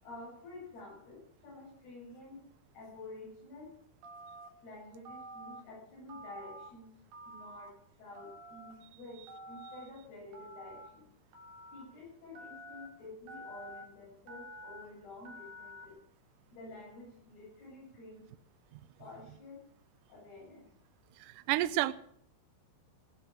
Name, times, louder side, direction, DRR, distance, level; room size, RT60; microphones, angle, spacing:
voice 1, 0.0-2.4 2.7-3.8 4.6-6.9 7.3-11.1 11.7-16.0 16.5-18.3 19.0-19.6 20.1-20.6, left 2 dB, 75° left, -5 dB, 10.0 m, -50 dB
Telephone, 4.0-4.5 5.0-5.6 6.1-6.7 7.1-7.7 8.1-8.7 9.3-9.8 10.3-10.9 11.3-11.8 12.3-12.9 13.3-13.8 14.3-14.8 15.2-15.8, right 1 dB, 65° right, 4.2 m, -49 dB
voice 2, 21.2-21.9, right 15 dB, 80° right, 13 dB, 1.9 m, -30 dB
17.0 x 10.5 x 6.4 m, 0.63 s
omnidirectional pair, 4.6 m